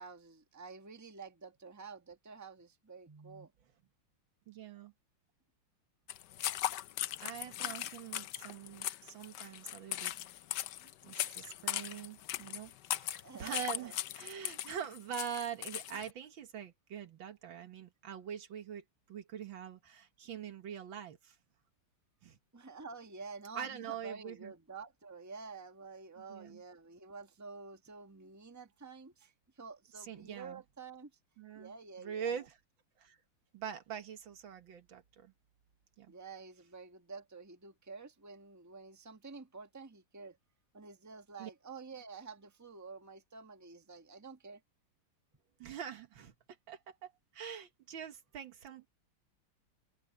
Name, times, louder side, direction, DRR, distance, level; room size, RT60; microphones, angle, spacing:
voice 1, 0.0-3.5 13.0-14.0 22.5-29.3 29.6-31.1 31.5-32.4 36.1-40.4 40.7-44.6, right 4 dB, 10° right, 1.4 m, -49 dB
voice 2, 4.5-4.9 7.2-10.1 11.0-21.4 22.2-22.4 23.6-24.5 26.2-26.6 30.0-30.6 31.4-32.6 33.0-33.2 33.5-35.3 36.0-36.1 41.4-41.5 45.6-46.3 46.7-48.9, right 8 dB, 65° right, 1.9 m, -44 dB
sound 1, 6.1-16.1, left 13 dB, 70° left, 1.1 m, -39 dB
omnidirectional pair, 2.3 m